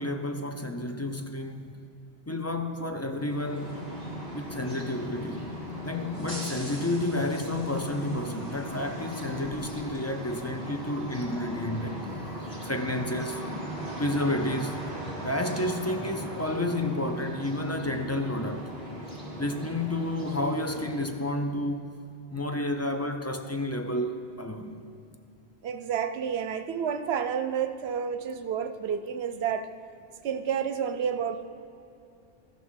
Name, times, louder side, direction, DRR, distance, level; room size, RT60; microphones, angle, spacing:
voice 1, 0.0-1.8 2.3-3.8 4.3-5.5 5.8-12.0 12.6-13.5 14.0-14.9 15.2-18.7 19.4-21.9 22.3-24.8, left 1 dB, 20° left, 5 dB, 0.4 m, -31 dB
sound 1, 3.1-21.2, equal, 50° left, 2.9 m, -38 dB
voice 2, 25.6-29.7 30.2-31.4, right 7 dB, 75° right, 9 dB, 0.8 m, -30 dB
13.5 x 5.8 x 6.3 m, 2.7 s
omnidirectional pair, 1.1 m